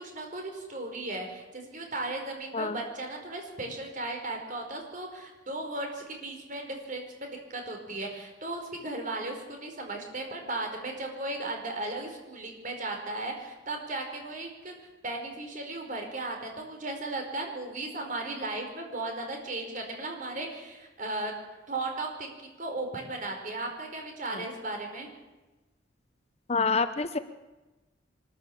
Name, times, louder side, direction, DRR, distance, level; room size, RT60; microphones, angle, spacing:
voice 1, 0.0-21.3 21.7-25.1, right 2 dB, 45° right, 3 dB, 4.8 m, -36 dB
voice 2, 26.5-27.2, left 4 dB, 35° left, 11 dB, 0.8 m, -27 dB
24.0 x 14.0 x 8.6 m, 1.1 s
head